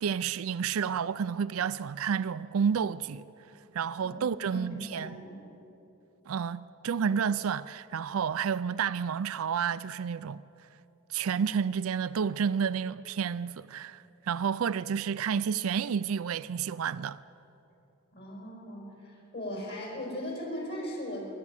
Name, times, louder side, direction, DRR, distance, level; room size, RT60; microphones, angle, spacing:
voice 1, 0.0-3.2 3.7-5.2 6.3-10.4 11.1-17.2, right 7 dB, 80° right, 0.4 m, -30 dB
voice 2, 4.1-5.3 18.1-21.3, equal, 55° left, 5.2 m, -38 dB
25.5 x 12.0 x 8.9 m
head